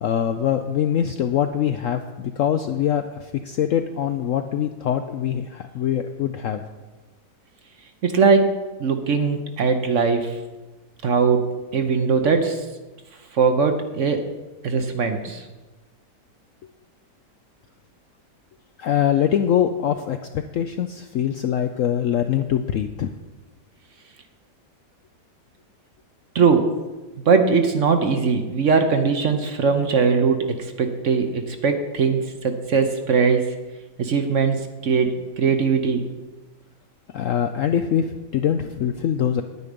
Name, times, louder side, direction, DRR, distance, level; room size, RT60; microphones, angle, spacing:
voice 1, 0.0-6.6 18.8-20.2 20.5-23.1 37.1-38.1 38.3-39.4, left 9 dB, 70° left, 7 dB, 0.7 m, -23 dB
voice 2, 8.0-10.4 11.0-12.6 13.3-14.2 14.6-15.4 26.3-26.7 27.3-33.5 34.0-36.0, right 5 dB, 55° right, 6 dB, 1.0 m, -20 dB
9.8 x 9.3 x 5.2 m, 1.2 s
omnidirectional pair, 1.8 m